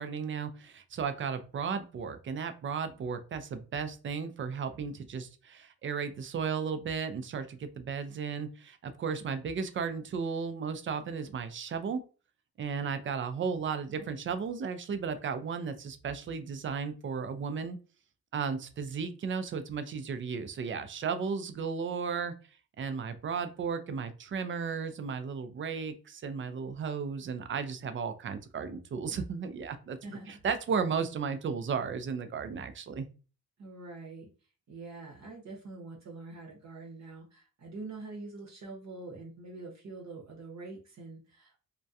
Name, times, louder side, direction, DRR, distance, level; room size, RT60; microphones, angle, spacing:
voice 1, 0.0-12.0 12.6-17.8 18.3-22.3 22.8-30.0 30.3-33.1, right 6 dB, 35° right, 10 dB, 0.4 m, -34 dB
voice 2, 33.6-34.3 34.7-41.6, right 3 dB, 55° right, -1 dB, 0.9 m, -45 dB
2.3 x 2.2 x 2.6 m, 0.35 s
cardioid pair, 80°, 34 cm